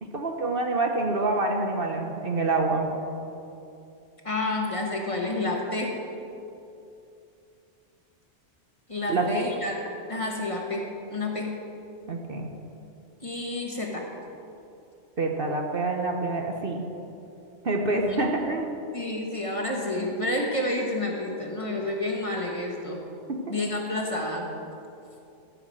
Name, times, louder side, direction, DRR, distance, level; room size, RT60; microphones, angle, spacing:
voice 1, 0.0-2.9 9.1-9.4 12.1-12.5 15.2-16.9 17.6-18.7 23.3-23.4, right 2 dB, 50° right, 2 dB, 1.1 m, -26 dB
voice 2, 4.2-6.0 8.9-9.8 10.1-11.5 13.2-14.1 17.9-18.3 18.9-23.0 23.5-24.5, left 2 dB, 25° left, -1 dB, 1.4 m, -29 dB
13.5 x 5.8 x 7.6 m, 2.7 s
omnidirectional pair, 1.3 m